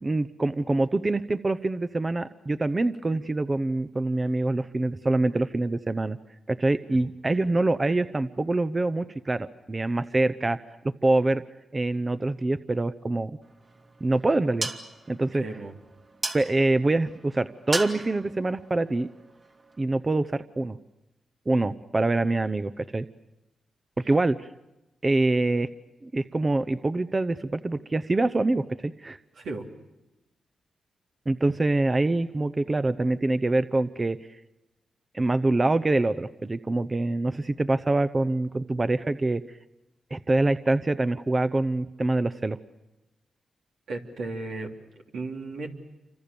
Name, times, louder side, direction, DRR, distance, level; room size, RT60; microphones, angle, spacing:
voice 1, 0.0-6.2 6.5-10.6 11.0-11.4 11.7-13.3 14.0-14.7 15.1-15.4 16.3-19.1 19.8-20.8 21.5-23.1 24.1-24.5 25.0-25.7 26.0-29.2 31.3-34.2 35.1-39.4 40.1-42.6, right 2 dB, 30° right, 13 dB, 0.8 m, -25 dB
sound 1, 13.4-19.9, right 2 dB, 45° right, 2.9 m, -37 dB
voice 2, 15.3-15.7 29.4-29.6 43.9-44.7 45.1-45.7, right 3 dB, 85° right, 1 dB, 3.2 m, -35 dB
29.0 x 25.5 x 7.0 m, 1.0 s
cardioid pair, 55°, 0 cm